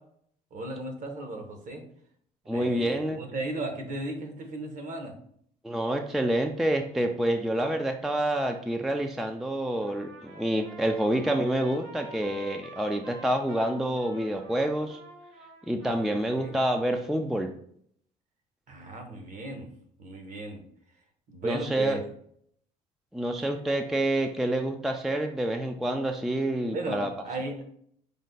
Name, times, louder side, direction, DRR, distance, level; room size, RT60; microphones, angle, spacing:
voice 1, 0.5-1.8 2.5-5.1 15.9-16.5 18.7-19.7 20.0-20.6 21.3-22.0 23.4-23.5 26.7-27.6, right 2 dB, 50° right, 4 dB, 1.0 m, -36 dB
voice 2, 2.5-3.2 5.6-15.0 15.7-17.5 21.4-22.0 23.1-27.1, right 1 dB, ahead, 5 dB, 0.3 m, -28 dB
Trumpet, 9.8-16.9, right 2 dB, 85° right, 1.0 m, -48 dB
5.2 x 2.1 x 3.8 m, 0.64 s
cardioid pair, 110°, 17 cm